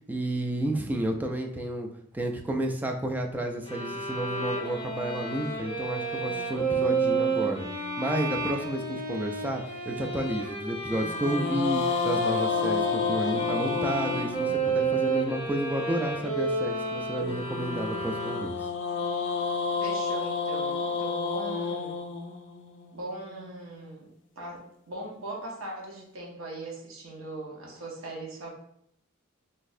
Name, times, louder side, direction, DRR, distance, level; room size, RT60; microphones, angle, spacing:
voice 1, 0.1-1.9 2.1-7.7 8.0-18.6, right 1 dB, 10° right, 2 dB, 0.3 m, -31 dB
sound 1, 3.6-18.8, right 3 dB, 25° left, 1.4 m, -31 dB
sound 2, 6.3-8.7 10.9-15.1 17.2-23.4, left 4 dB, 60° left, 0.4 m, -31 dB
voice 2, 19.8-22.0 22.9-24.1 24.4-28.5, right 1 dB, 70° right, -2 dB, 0.8 m, -39 dB
3.9 x 2.6 x 2.6 m, 0.72 s
head